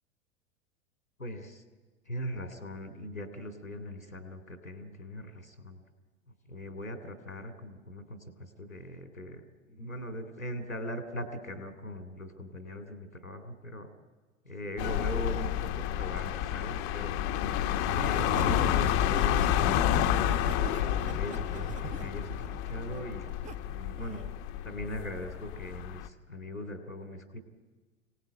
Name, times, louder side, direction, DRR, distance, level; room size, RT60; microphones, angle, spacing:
voice 1, 1.2-1.6 2.1-5.8 6.5-9.4 9.7-13.9 14.4-17.2 17.9-19.8 20.1-23.3 23.7-24.2 24.6-27.4, equal, 90° left, 7 dB, 3.1 m, -40 dB
sound 1, 14.8-26.1, left 10 dB, 40° left, 1.1 m, -29 dB
Laughter, 17.9-23.5 24.0-24.3, right 8 dB, 20° right, 1.0 m, -44 dB
25.5 x 18.0 x 8.9 m, 1.3 s
figure-of-eight pair, 90°, 40 cm